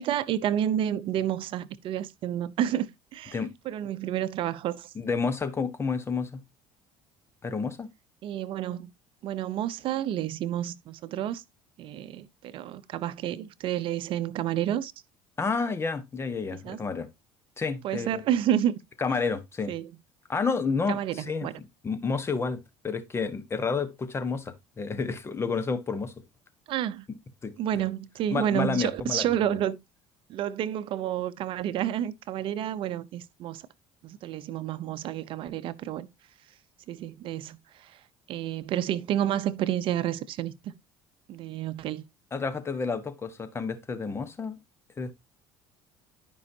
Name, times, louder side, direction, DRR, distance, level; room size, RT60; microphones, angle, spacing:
voice 1, 0.0-4.9 8.2-8.9 9.2-11.4 11.8-14.9 16.6-16.8 17.8-18.7 19.7-19.9 20.9-21.5 26.7-27.0 27.6-29.8 30.3-33.7 34.0-36.1 36.9-38.0 38.3-40.7 41.3-42.0, right 11 dB, 55° right, 0.7 m, -30 dB
voice 2, 4.9-6.4 7.4-7.9 15.4-17.1 17.6-18.2 19.0-19.7 20.3-26.1 27.4-27.5 28.3-29.5 42.3-44.6 45.0-45.1, left 4 dB, 25° left, 1.3 m, -30 dB
12.5 x 5.4 x 2.8 m
supercardioid pair, 110°, 10 cm